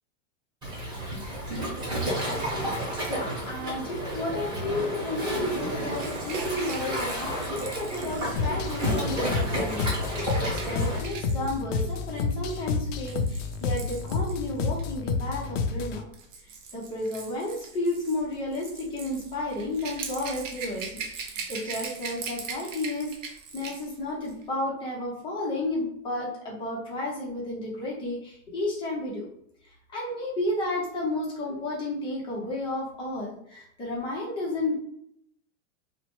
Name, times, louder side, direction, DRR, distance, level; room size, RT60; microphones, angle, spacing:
Waves surf, 0.6-11.0, right 1 dB, 10° right, 1.0 m, -31 dB
voice 1, 3.1-16.1 16.7-29.3 29.6-34.7, left 1 dB, 15° left, -3 dB, 0.5 m, -32 dB
Rattle / Rattle (instrument), 5.9-14.9 15.9-24.0 24.3-24.4, right 5 dB, 80° right, 0.8 m, -41 dB
sound 1, 8.4-16.0, left 4 dB, 75° left, 0.5 m, -30 dB
3.0 x 2.1 x 2.9 m, 0.70 s
supercardioid pair, 160°, 38 cm